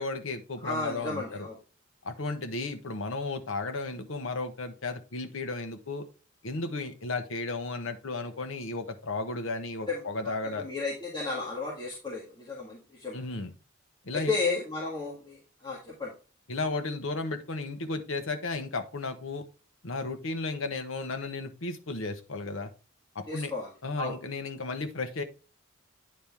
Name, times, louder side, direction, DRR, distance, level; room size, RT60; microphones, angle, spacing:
voice 1, 0.0-1.5 2.0-6.0 6.4-10.7 13.1-13.5 14.0-14.3 16.5-19.4 19.8-22.7 23.1-23.5 23.8-25.2, left 3 dB, 85° left, 7 dB, 1.0 m, -34 dB
voice 2, 0.6-1.6 9.9-13.2 14.1-16.1 23.3-24.2, left 3 dB, 20° left, -6 dB, 1.7 m, -34 dB
9.4 x 4.3 x 3.5 m, 0.34 s
head